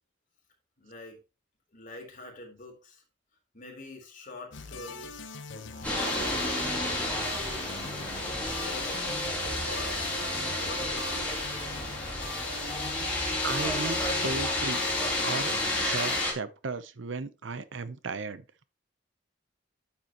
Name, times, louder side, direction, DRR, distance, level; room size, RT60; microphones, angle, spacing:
voice 1, 0.8-1.2 1.7-3.0 3.5-7.4 7.8-7.9 8.5-11.3, left 2 dB, 45° left, 3.6 m, -46 dB
sound 1, 4.5-16.3, left 4 dB, 75° left, 0.9 m, -43 dB
sound 2, 5.8-16.3, left 1 dB, 10° left, 3.5 m, -30 dB
voice 2, 13.4-14.8 15.2-15.5 15.8-18.4, right 4 dB, 80° right, 0.8 m, -35 dB
9.6 x 7.3 x 3.0 m
head